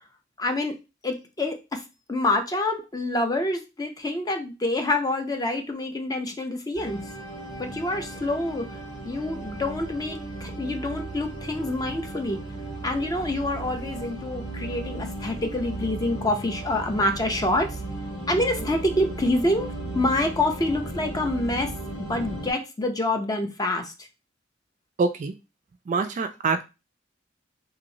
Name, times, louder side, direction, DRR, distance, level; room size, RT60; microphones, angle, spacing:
voice 1, 0.4-0.7 1.0-1.8 2.1-7.0 7.6-8.7 9.0-12.4 12.8-17.7 18.3-19.7 19.9-21.7 22.0-23.9, left 1 dB, 20° left, 5 dB, 0.5 m, -26 dB
sound 1, 6.7-22.5, right 2 dB, 70° left, 1.9 m, -36 dB
voice 2, 25.0-25.3 25.9-26.7, right 4 dB, 40° right, 8 dB, 0.3 m, -25 dB
3.0 x 2.8 x 2.6 m, 0.27 s
head